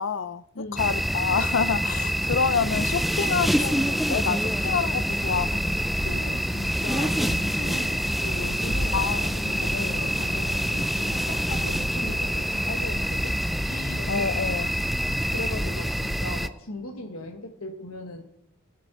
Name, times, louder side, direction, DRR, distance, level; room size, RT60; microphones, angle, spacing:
voice 1, 0.0-6.0 8.9-10.0 13.7-14.7, left 5 dB, 65° left, 0.5 m, -28 dB
voice 2, 0.5-0.9 2.0-2.1 6.0-9.0 9.3-13.4 14.0-14.1 15.3-18.2, left 2 dB, 90° left, 1.3 m, -38 dB
sound 1, 0.8-16.5, equal, ahead, 0.3 m, -26 dB
21.5 x 7.6 x 4.1 m
head